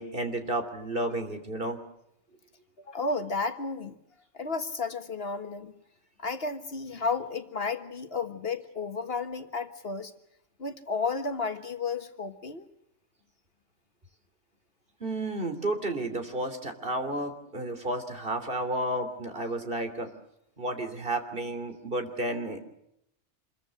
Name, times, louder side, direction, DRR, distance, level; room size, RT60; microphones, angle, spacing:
voice 1, 0.0-1.8 15.0-20.1 20.6-22.6, right 1 dB, 50° right, 7 dB, 3.4 m, -32 dB
voice 2, 2.8-4.0 4.3-5.7 6.2-10.1 10.6-12.7, left 4 dB, 55° left, 8 dB, 1.7 m, -32 dB
27.0 x 22.5 x 6.4 m, 0.78 s
omnidirectional pair, 1.2 m